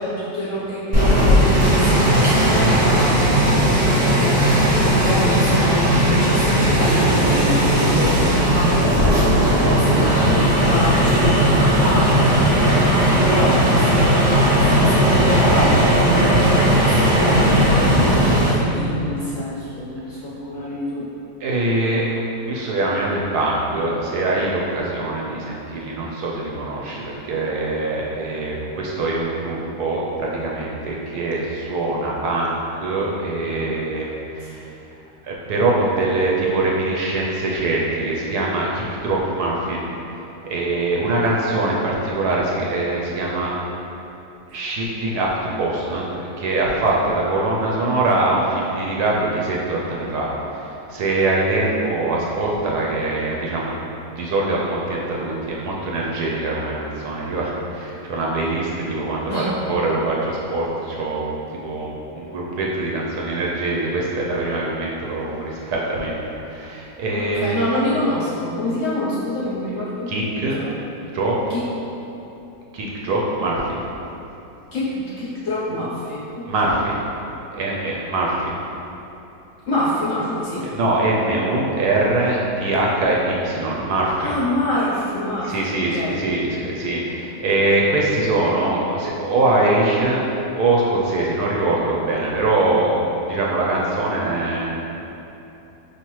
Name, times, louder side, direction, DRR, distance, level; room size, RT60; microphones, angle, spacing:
voice 1, 0.0-3.9 5.0-12.4 13.1-21.1 59.3-59.5 67.1-70.1 70.4-70.7 71.5-71.7 74.7-76.8 79.7-80.7 84.2-86.2, left 1 dB, 60° left, -8 dB, 0.8 m, -26 dB
sound 1, 0.9-18.5, equal, 35° right, 0.8 m, -16 dB
voice 2, 21.4-22.2 22.4-34.1 34.4-34.7 35.2-39.9 40.4-43.5 44.5-53.8 54.1-66.2 66.4-67.6 70.1-70.6 71.1-71.4 72.7-73.8 76.5-77.0 77.5-78.5 80.6-84.3 85.5-90.2 90.6-94.6, right 2 dB, 70° right, -3 dB, 1.0 m, -23 dB
4.9 x 2.8 x 3.0 m, 3.0 s
omnidirectional pair, 1.9 m